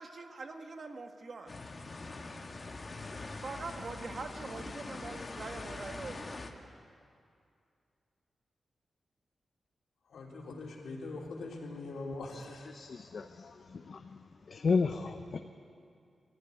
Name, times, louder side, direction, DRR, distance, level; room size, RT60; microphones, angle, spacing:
voice 1, 0.0-1.5 3.4-6.7, right 3 dB, 45° right, 5 dB, 1.5 m, -43 dB
sound 1, 1.5-6.5, left 3 dB, 30° left, 1.5 m, -43 dB
voice 2, 10.1-12.7, left 2 dB, 85° left, -1 dB, 3.6 m, -42 dB
voice 3, 12.7-14.2 14.5-15.4, left 4 dB, 50° left, 6 dB, 0.8 m, -33 dB
23.0 x 14.5 x 9.8 m, 2.4 s
wide cardioid pair, 145°, 0 cm